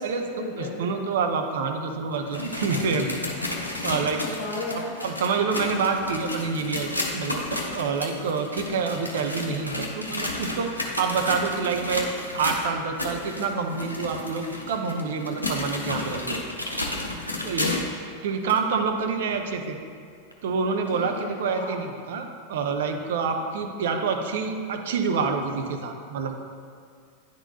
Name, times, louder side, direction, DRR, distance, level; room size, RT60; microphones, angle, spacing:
voice 1, 0.0-1.0 4.2-4.9 20.9-21.8, left 2 dB, 65° left, -4 dB, 1.3 m, -34 dB
voice 2, 0.6-3.2 3.8-4.2 5.0-12.1 12.3-16.4 17.4-17.8 18.2-19.8 20.4-26.3, right 5 dB, 55° right, 5 dB, 0.6 m, -27 dB
sound 1, 2.1-18.0 18.5-18.6 19.3-19.4 20.3-20.4, left 2 dB, 85° left, 0.7 m, -32 dB
9.7 x 3.9 x 2.7 m, 2.2 s
figure-of-eight pair, 90°, 0 cm